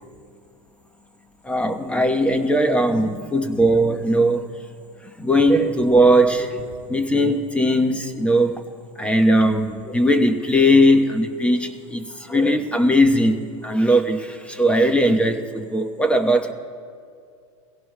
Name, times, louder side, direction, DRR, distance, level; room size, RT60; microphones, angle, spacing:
voice 1, 1.4-4.5 5.2-8.6 9.0-16.5, equal, 5° left, 8 dB, 0.9 m, -19 dB
22.5 x 17.0 x 2.2 m, 2.2 s
hypercardioid pair, 110°, 18 cm